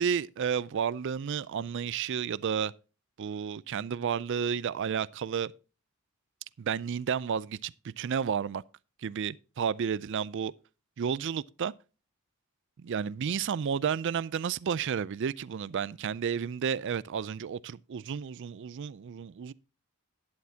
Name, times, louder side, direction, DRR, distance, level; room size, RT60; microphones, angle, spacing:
voice 1, 0.0-2.7 3.2-5.5 6.6-8.6 9.0-10.5 11.0-11.7 12.8-19.5, right 7 dB, 55° right, 0.4 m, -31 dB
12.0 x 10.5 x 2.8 m
head